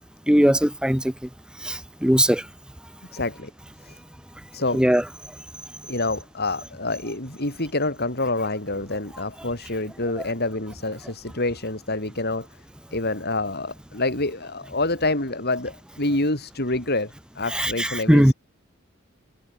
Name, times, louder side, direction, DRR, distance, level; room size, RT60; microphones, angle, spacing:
voice 1, 0.3-1.0 2.0-2.4 4.7-5.0 17.6-18.3, equal, 5° right, 1.2 m, -18 dB
voice 2, 3.1-3.5 3.8-4.0 4.5-4.8 5.9-12.5 12.9-18.3, left 2 dB, 50° left, 6.9 m, -27 dB
head